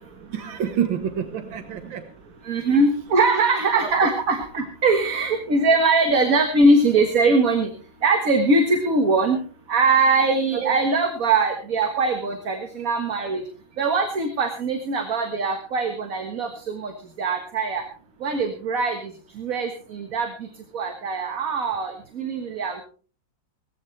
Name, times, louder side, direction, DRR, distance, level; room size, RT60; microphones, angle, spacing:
voice 1, 0.3-2.0 2.7-2.8 3.8-3.9 10.5-10.7, right 8 dB, 80° right, 7 dB, 2.0 m, -28 dB
voice 2, 2.5-7.7 8.0-9.4 9.7-13.4 13.8-16.5 16.7-16.9 17.2-17.8 18.2-19.0 19.4-20.3 20.7-22.8, right 3 dB, 50° right, 5 dB, 1.9 m, -21 dB
19.5 x 14.5 x 3.3 m, 0.41 s
omnidirectional pair, 2.1 m